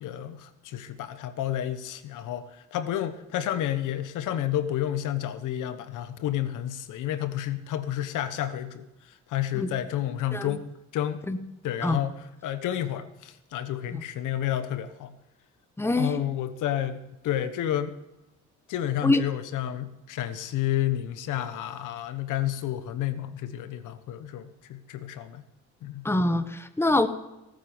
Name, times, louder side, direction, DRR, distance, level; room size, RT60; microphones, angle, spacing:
voice 1, 0.0-10.7 10.9-11.2 11.6-15.1 15.9-17.9 18.7-25.4 25.8-26.1, left 11 dB, 85° left, 12 dB, 1.2 m, -30 dB
voice 2, 15.8-16.2 19.0-19.2 26.0-27.1, left 2 dB, 10° left, 11 dB, 1.2 m, -24 dB
18.0 x 9.2 x 7.1 m, 0.95 s
cardioid pair, 90°, 30 cm